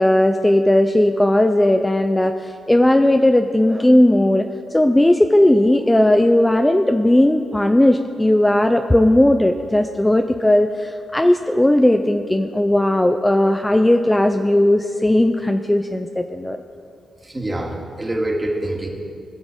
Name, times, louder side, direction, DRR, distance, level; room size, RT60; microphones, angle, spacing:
voice 1, 0.0-4.4 4.7-16.6, left 1 dB, 15° left, 6 dB, 0.5 m, -16 dB
voice 2, 17.2-18.9, right 1 dB, 20° right, 0 dB, 2.3 m, -25 dB
18.5 x 6.1 x 5.1 m, 2.4 s
supercardioid pair, 55°, 0 cm